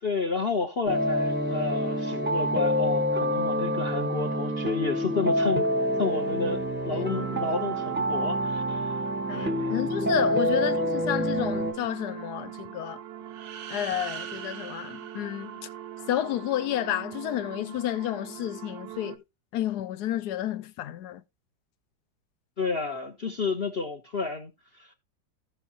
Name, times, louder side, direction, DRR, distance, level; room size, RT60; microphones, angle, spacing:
voice 1, 0.0-5.7 6.0-9.0 9.3-9.7 22.6-24.9, left 4 dB, 45° left, 0.8 m, -31 dB
sound 1, 0.9-11.7, equal, 10° right, 0.9 m, -27 dB
sound 2, 6.9-19.2, right 10 dB, 80° right, 1.4 m, -42 dB
voice 2, 9.3-13.0 13.7-15.6 16.1-19.2 19.5-21.2, left 12 dB, 70° left, 1.1 m, -31 dB
sound 3, 13.3-16.2, right 8 dB, 55° right, 0.8 m, -42 dB
16.0 x 5.6 x 2.8 m
omnidirectional pair, 1.9 m